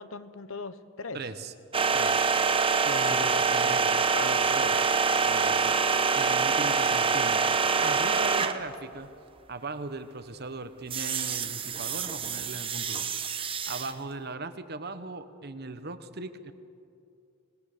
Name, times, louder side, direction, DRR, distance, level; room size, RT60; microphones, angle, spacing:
voice 1, 0.0-1.2 2.8-3.8 4.1-4.6, left 4 dB, 75° left, 12 dB, 1.0 m, -39 dB
voice 2, 1.1-1.5 1.9-2.3 3.1-4.0 4.5-4.9 5.2-7.4 7.8-9.1 9.5-13.1 13.7-16.5, right 3 dB, 50° right, 10 dB, 1.1 m, -39 dB
sound 1, 1.7-8.8 10.9-13.9, right 5 dB, 25° right, 0.9 m, -25 dB
26.0 x 19.0 x 6.8 m, 2.6 s
head